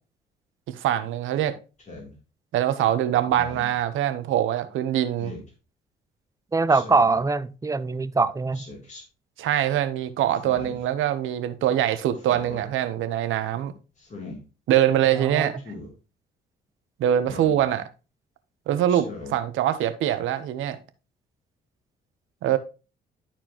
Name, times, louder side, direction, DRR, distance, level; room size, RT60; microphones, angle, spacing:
voice 1, 0.7-1.6 2.5-5.3 9.4-13.7 14.7-15.6 17.0-17.9 18.7-20.8 22.4-22.6, right 11 dB, 85° right, 0.8 m, -23 dB
Speech synthesizer, 1.8-2.1 3.2-3.8 5.2-5.5 6.7-7.2 8.5-9.0 10.3-10.9 12.1-12.7 14.0-14.4 15.6-15.9 17.2-17.6 18.9-19.4, left 2 dB, 35° left, 3.0 m, -40 dB
voice 2, 6.5-8.6 15.2-15.5, right 3 dB, 15° right, 0.5 m, -23 dB
12.0 x 4.4 x 2.9 m
cardioid pair, 90°, 20 cm